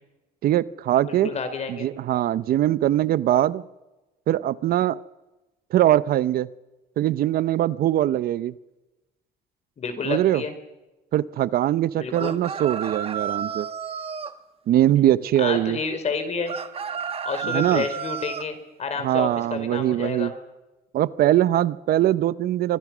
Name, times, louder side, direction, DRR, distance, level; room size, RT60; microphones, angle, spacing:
voice 1, 0.4-1.3 1.7-3.6 4.3-5.0 5.7-6.5 7.0-8.5 10.1-10.4 11.1-13.7 14.7-15.8 17.4-17.8 19.0-20.3 20.9-22.8, right 12 dB, 65° right, 17 dB, 0.7 m, -22 dB
voice 2, 1.0-1.9 9.8-10.5 11.9-12.4 15.4-16.5 17.2-20.3, left 4 dB, 40° left, 8 dB, 4.6 m, -30 dB
sound 1, 12.1-14.4 16.5-18.5, right 7 dB, 35° right, 1.4 m, -31 dB
25.5 x 23.5 x 6.2 m, 1.0 s
cardioid pair, 110°, 17 cm